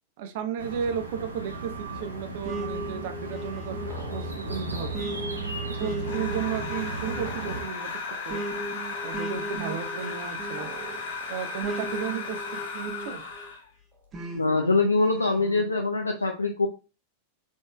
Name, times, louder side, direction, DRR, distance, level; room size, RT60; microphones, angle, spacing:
voice 1, 0.2-5.0 5.8-7.9 8.2-8.4 9.0-10.7 11.3-13.2, right 7 dB, 50° right, 8 dB, 0.5 m, -34 dB
sound 1, 0.6-7.6, right 2 dB, 85° right, 0.8 m, -35 dB
sound 2, 2.4-13.5 14.1-15.7, right 1 dB, 25° right, 0.9 m, -38 dB
sound 3, 6.0-13.7, left 4 dB, 60° left, 1.7 m, -35 dB
voice 2, 14.3-16.7, left 3 dB, 80° left, 3 dB, 0.4 m, -24 dB
3.8 x 3.7 x 2.2 m, 0.31 s
figure-of-eight pair, 90°, 0 cm